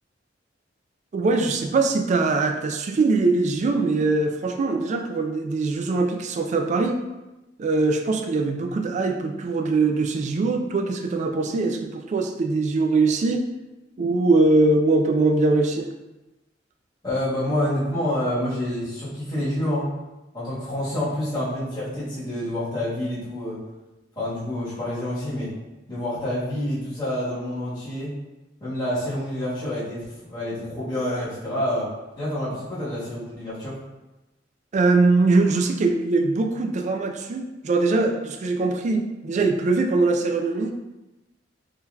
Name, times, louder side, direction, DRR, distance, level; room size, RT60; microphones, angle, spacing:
voice 1, 1.1-7.0 7.6-13.4 14.0-15.9 34.7-40.7, right 3 dB, 40° right, 4 dB, 0.3 m, -22 dB
voice 2, 17.0-19.9 20.3-23.6 24.1-25.5 25.9-28.1 28.6-33.8, left 1 dB, 25° left, -12 dB, 1.3 m, -28 dB
3.7 x 2.7 x 2.3 m, 1.0 s
head